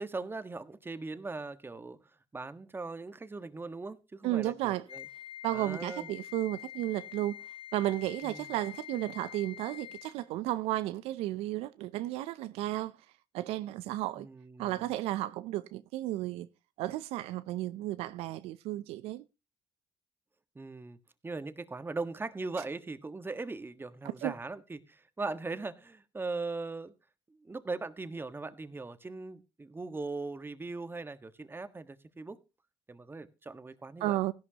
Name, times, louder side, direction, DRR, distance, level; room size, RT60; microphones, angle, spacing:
voice 1, 0.0-2.0 2.3-5.0 5.5-6.1 8.2-8.5 14.2-14.9 20.5-21.0 21.2-26.9 27.4-32.4 32.9-34.2, right 3 dB, 20° right, 1.5 m, -39 dB
voice 2, 4.2-4.8 5.4-7.4 7.7-12.9 13.3-14.3 14.6-16.5 16.8-19.2 24.0-24.3 34.0-34.3, right 15 dB, 80° right, 0.6 m, -33 dB
Wind instrument woodwind instrument, 4.9-10.2, left 11 dB, 60° left, 1.3 m, -46 dB
16.0 x 11.5 x 2.9 m
supercardioid pair, 75°, 10 cm